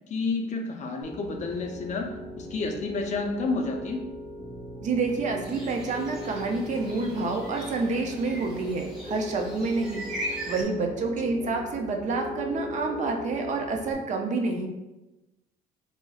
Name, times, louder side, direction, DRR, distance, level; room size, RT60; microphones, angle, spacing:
voice 1, 0.1-4.0, left 3 dB, 45° left, 3 dB, 0.4 m, -30 dB
Piano, 1.0-13.9, left 1 dB, 30° right, 0.9 m, -39 dB
voice 2, 4.8-14.7, right 3 dB, 45° right, 3 dB, 0.5 m, -28 dB
sound 1, 5.4-10.6, right 1 dB, 5° right, 0.9 m, -39 dB
3.9 x 2.0 x 2.3 m, 0.99 s
cardioid pair, 110°, 17 cm